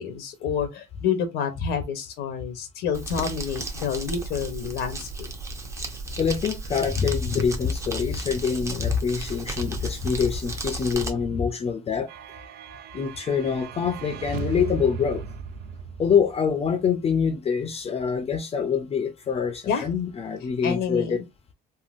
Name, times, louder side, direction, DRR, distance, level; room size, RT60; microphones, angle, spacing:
voice 1, 0.0-5.1 19.7-19.9 20.6-21.2, left 7 dB, 90° left, 0.8 m, -28 dB
Crumpling crinkling, 2.9-11.1, right 2 dB, 15° right, 0.7 m, -34 dB
voice 2, 6.2-12.1 12.9-15.2 16.0-21.2, left 6 dB, 35° left, 0.5 m, -25 dB
sound 1, 12.1-16.7, right 7 dB, 70° right, 0.4 m, -37 dB
3.6 x 2.1 x 2.5 m
cardioid pair, 110°, 17 cm